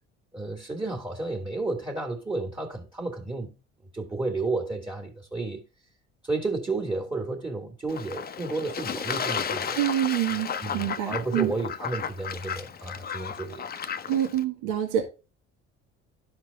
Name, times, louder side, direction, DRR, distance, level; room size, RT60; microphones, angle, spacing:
voice 1, 0.3-3.5 3.9-5.6 6.2-9.8 10.6-13.6, right 3 dB, 15° right, 1.8 m, -32 dB
Fowl / Bird / Water, 7.9-14.4, left 7 dB, 30° left, 0.7 m, -33 dB
voice 2, 9.7-11.5 14.1-15.0, right 11 dB, 65° right, 1.7 m, -26 dB
12.0 x 4.5 x 3.4 m
hypercardioid pair, 60°, 33 cm